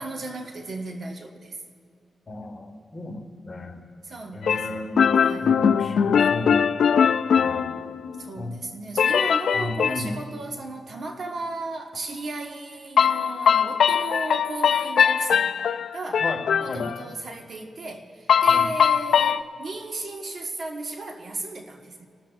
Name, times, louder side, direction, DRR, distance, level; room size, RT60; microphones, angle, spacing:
voice 1, 0.0-1.6 4.0-4.9 5.2-5.6 8.2-15.5 15.9-16.2 16.6-22.1, right 2 dB, 55° right, 2 dB, 1.4 m, -35 dB
voice 2, 2.3-3.8 4.3-5.1 5.4-6.7 7.3-7.7 8.4-8.6 9.5-10.1 16.2-16.8 18.5-18.7, left 1 dB, 35° left, 2 dB, 1.6 m, -33 dB
sound 1, 4.4-8.3 9.0-10.1 13.0-17.0 18.3-19.4, left 7 dB, 75° left, 0.3 m, -21 dB
27.5 x 13.5 x 2.5 m, 2.4 s
cardioid pair, 100°, 0 cm